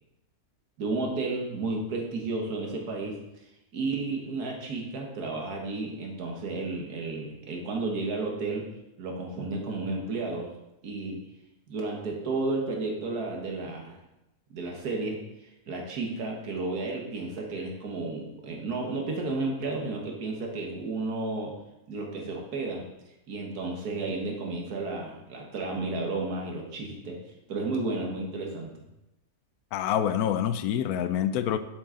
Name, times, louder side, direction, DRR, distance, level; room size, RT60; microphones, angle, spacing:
voice 1, 0.8-3.2 3.7-8.7 9.0-10.5 10.8-11.2 11.7-14.0 14.5-21.5 21.9-22.9 23.3-27.2 27.5-28.7, right 3 dB, 85° right, 0 dB, 1.8 m, -32 dB
voice 2, 29.7-31.6, left 10 dB, 80° left, 11 dB, 1.0 m, -26 dB
7.6 x 6.2 x 3.8 m, 0.91 s
omnidirectional pair, 1.6 m